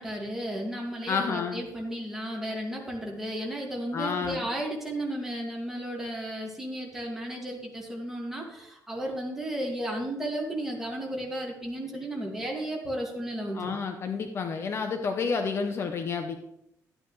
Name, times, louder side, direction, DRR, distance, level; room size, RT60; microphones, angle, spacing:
voice 1, 0.0-13.7, right 1 dB, 5° right, -2 dB, 2.3 m, -34 dB
voice 2, 1.1-1.6 3.9-4.5 13.5-16.4, left 5 dB, 45° left, 5 dB, 0.9 m, -30 dB
12.5 x 9.4 x 3.3 m, 0.77 s
cardioid pair, 160°, 6 cm